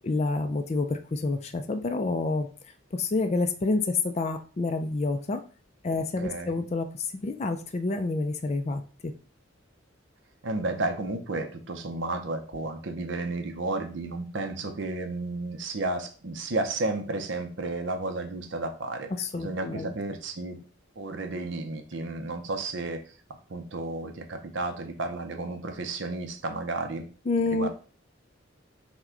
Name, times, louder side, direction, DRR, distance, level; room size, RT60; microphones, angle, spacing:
voice 1, 0.0-2.5 2.9-5.4 5.8-9.1 19.2-19.9 27.3-27.7, left 3 dB, 35° left, 7 dB, 0.4 m, -28 dB
voice 2, 6.2-6.6 10.4-20.6 21.0-23.0 23.5-27.1 27.5-27.7, right 2 dB, 65° right, 5 dB, 0.6 m, -32 dB
5.8 x 2.2 x 3.7 m, 0.38 s
head